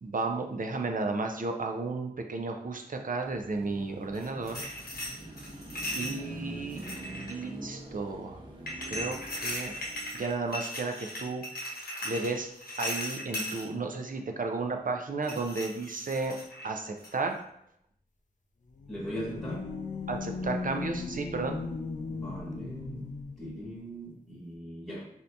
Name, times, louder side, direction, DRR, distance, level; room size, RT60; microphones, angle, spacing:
voice 1, 0.0-4.6 6.0-6.8 7.3-8.4 8.9-9.7 10.1-11.4 12.0-12.5 12.8-16.4 16.6-17.4 20.1-21.7, right 3 dB, 60° right, 4 dB, 0.5 m, -33 dB
Car passing by / Traffic noise roadway noise / Engine, 3.2-10.6, right 1 dB, 30° right, 0.8 m, -45 dB
sound 1, 4.1-6.2 6.7-7.5 8.7-13.6 15.2-16.7 17.0-17.3, left 1 dB, 70° left, 0.8 m, -38 dB
sound 2, 18.7-23.5, left 4 dB, 50° left, 0.4 m, -37 dB
voice 2, 18.9-19.7 22.1-25.1, equal, 5° left, -8 dB, 1.2 m, -40 dB
2.7 x 2.6 x 3.3 m, 0.74 s
wide cardioid pair, 50°, 16 cm